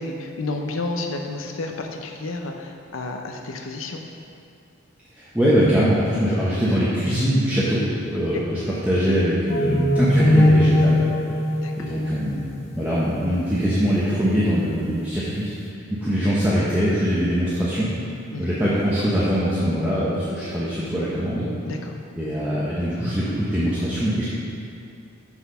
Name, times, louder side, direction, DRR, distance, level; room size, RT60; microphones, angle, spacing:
voice 1, 0.0-4.0 8.1-8.4 11.6-11.7 18.3-18.4 21.6-22.0, left 2 dB, 75° left, 3 dB, 0.7 m, -31 dB
voice 2, 5.1-11.0 11.8-15.5 16.0-17.9 18.4-21.5 22.2-24.3, equal, 10° right, -9 dB, 0.8 m, -22 dB
sound 1, 9.5-12.9, left 1 dB, 30° left, 0.6 m, -19 dB
6.3 x 5.7 x 5.6 m, 2.5 s
head